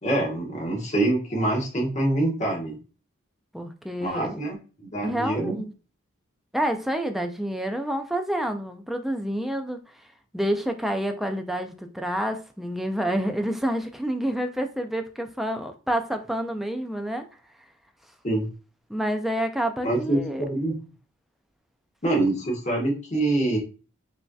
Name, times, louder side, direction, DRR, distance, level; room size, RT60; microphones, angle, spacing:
voice 1, 0.0-2.8 4.0-5.6 18.2-18.5 19.8-20.8 22.0-23.6, right 2 dB, 35° left, 1.2 m, -25 dB
voice 2, 3.5-4.4 5.0-5.7 6.5-10.1 10.3-17.2 18.9-20.4, equal, ahead, 0.3 m, -28 dB
5.3 x 2.7 x 2.3 m
head